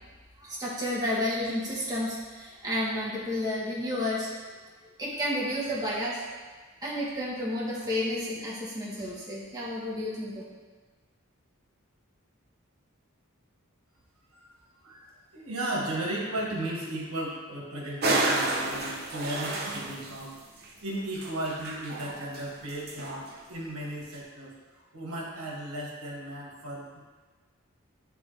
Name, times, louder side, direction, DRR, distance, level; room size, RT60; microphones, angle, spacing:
voice 1, 0.4-4.3 5.0-6.2 6.8-10.4, left 1 dB, 15° right, -7 dB, 1.2 m, -31 dB
voice 2, 14.8-20.4 20.8-27.0, right 1 dB, 85° right, -2 dB, 1.3 m, -35 dB
sound 1, 18.0-20.2 20.6-20.7 21.1-22.4 22.7-23.3, right 2 dB, 45° right, 0.8 m, -30 dB
9.6 x 3.5 x 3.2 m, 1.4 s
head